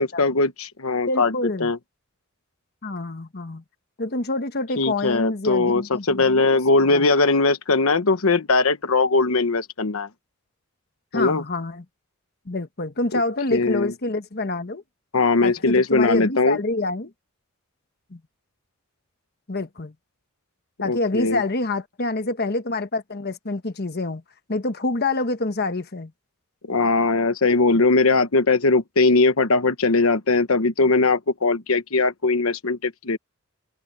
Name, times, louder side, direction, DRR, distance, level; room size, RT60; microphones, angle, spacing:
voice 1, 0.0-1.3 1.6-1.8 4.8-10.1 11.1-11.4 13.1-13.2 13.5-13.9 15.1-16.6 20.8-21.4 26.7-33.2, left 3 dB, 85° left, 1.1 m, -20 dB
voice 2, 1.1-1.7 2.8-3.6 4.0-6.5 6.9-7.1 11.1-11.8 12.5-14.8 15.4-17.1 18.1-18.2 19.5-19.9 20.8-24.2 24.5-26.1, left 2 dB, 50° left, 1.3 m, -27 dB
head